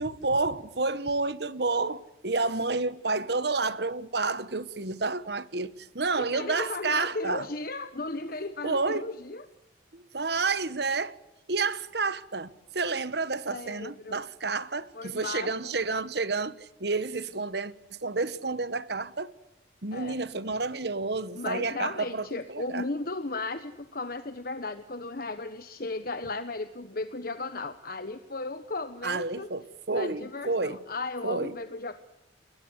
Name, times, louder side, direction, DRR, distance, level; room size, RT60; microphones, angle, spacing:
voice 1, 0.0-7.5 8.6-9.1 9.9-11.2 11.5-17.7 18.0-19.3 19.8-22.8 29.0-30.8 31.2-31.5, right 3 dB, 60° right, 1.3 m, -30 dB
voice 2, 6.2-9.4 13.5-14.2 14.9-15.7 19.9-20.2 21.3-29.5 29.9-31.9, left 3 dB, 50° left, 1.2 m, -35 dB
28.5 x 21.5 x 8.2 m
head